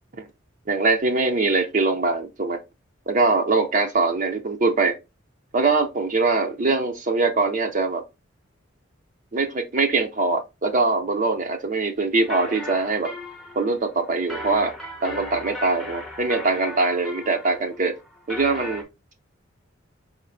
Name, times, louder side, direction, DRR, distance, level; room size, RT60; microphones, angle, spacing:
voice 1, 0.7-2.6 3.1-5.0 5.5-8.0 9.3-13.1 13.5-14.7 15.0-17.9 18.3-18.8, right 3 dB, 40° right, 0.6 m, -22 dB
sound 1, 12.2-18.8, left 1 dB, ahead, 0.8 m, -37 dB
4.3 x 4.3 x 2.5 m
head